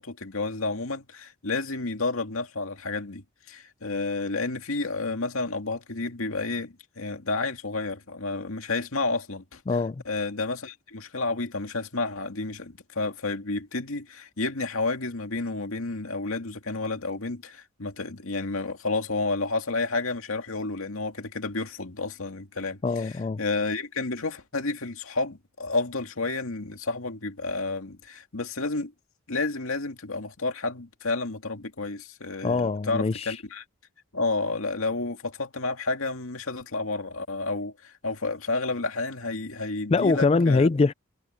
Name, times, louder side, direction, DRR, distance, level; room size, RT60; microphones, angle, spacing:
voice 1, 0.0-9.6 10.1-28.9 29.3-33.6 34.1-40.7, left 3 dB, 80° left, 2.1 m, -31 dB
voice 2, 9.7-10.0 22.8-23.4 32.4-33.4 39.9-40.9, left 3 dB, 30° left, 0.3 m, -23 dB
head